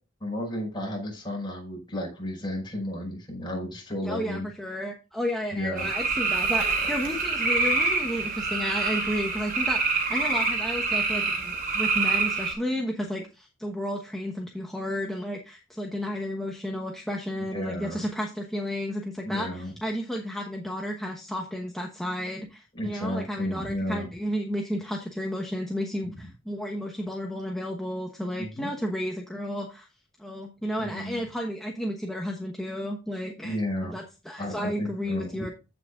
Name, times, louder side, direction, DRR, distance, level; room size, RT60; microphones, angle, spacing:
voice 1, 0.2-4.5 5.5-5.9 17.5-18.0 19.2-19.7 22.7-24.0 26.0-26.3 28.4-28.7 30.8-31.2 33.4-33.9 34.4-35.5, left 1 dB, 25° left, -1 dB, 5.5 m, -33 dB
voice 2, 4.0-29.9 30.2-33.6 33.8-35.5, equal, ahead, 0 dB, 1.1 m, -32 dB
sound 1, 5.8-12.5, right 4 dB, 50° right, 3.0 m, -26 dB
15.0 x 6.1 x 2.4 m, 0.29 s
head